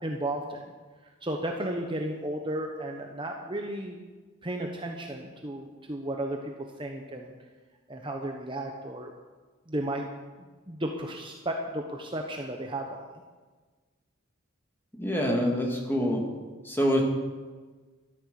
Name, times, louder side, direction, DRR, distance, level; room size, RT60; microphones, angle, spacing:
voice 1, 0.0-0.6 1.2-4.0 4.4-6.5 6.8-7.3 7.9-9.1 9.7-10.0 10.7-12.9 13.1-13.2, right 1 dB, 25° right, 2 dB, 1.0 m, -33 dB
voice 2, 15.0-16.2 16.6-17.0, equal, 10° left, 0 dB, 2.2 m, -26 dB
13.5 x 11.5 x 6.9 m, 1.4 s
head